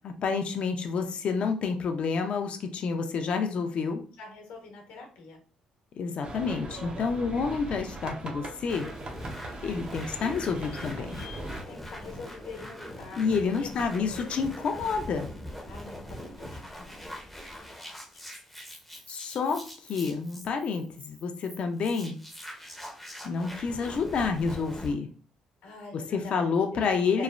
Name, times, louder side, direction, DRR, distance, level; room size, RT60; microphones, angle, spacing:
voice 1, 0.0-4.0 6.0-8.9 9.6-11.2 13.1-15.3 19.1-22.2 23.2-25.1 25.9-27.2, left 5 dB, 55° left, 5 dB, 0.5 m, -29 dB
voice 2, 4.2-5.4 11.7-13.2 13.6-13.7 14.1-14.3 15.7-16.9 25.6-26.4 26.7-27.2, left 4 dB, 85° left, 1 dB, 0.9 m, -44 dB
sound 1, 6.2-11.6, right 2 dB, 45° right, 0.7 m, -39 dB
sound 2, 8.7-24.9, equal, ahead, 0.6 m, -42 dB
3.1 x 2.0 x 2.4 m, 0.39 s
cardioid pair, 85°, 2 cm